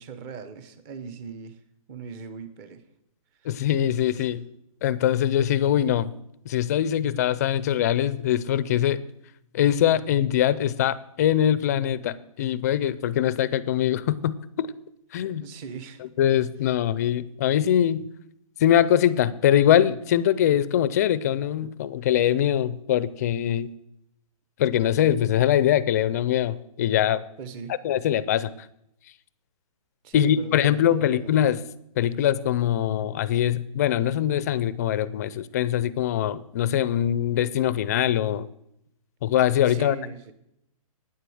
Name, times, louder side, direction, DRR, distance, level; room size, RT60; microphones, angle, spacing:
voice 1, 0.0-1.6 1.9-2.8 3.4-3.5 4.1-4.3 15.4-16.0 27.4-27.8 30.0-31.3 39.7-40.3, right 5 dB, 20° right, 11 dB, 0.8 m, -39 dB
voice 2, 3.5-4.4 4.8-6.1 6.5-9.0 9.5-14.7 15.1-15.4 16.0-18.1 18.6-23.7 24.6-27.2 27.8-28.5 30.1-31.6 32.0-38.5 39.2-40.0, left 10 dB, 25° left, 17 dB, 0.4 m, -22 dB
9.5 x 8.2 x 7.8 m, 0.77 s
hypercardioid pair, 160°, 19 cm